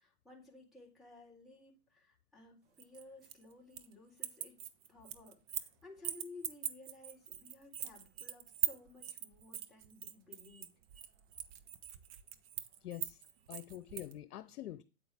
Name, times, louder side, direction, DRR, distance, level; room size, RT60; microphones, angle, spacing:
voice 1, 0.0-4.6 4.9-10.7, left 3 dB, ahead, 4.1 m, -56 dB
sound 1, 2.8-3.9 4.2-5.7 6.0-14.1, right 12 dB, 40° right, 1.1 m, -41 dB
voice 2, 12.8-13.2 13.5-14.8, left 12 dB, 75° left, 1.0 m, -46 dB
8.9 x 8.5 x 3.6 m
hypercardioid pair, 135°, 45 cm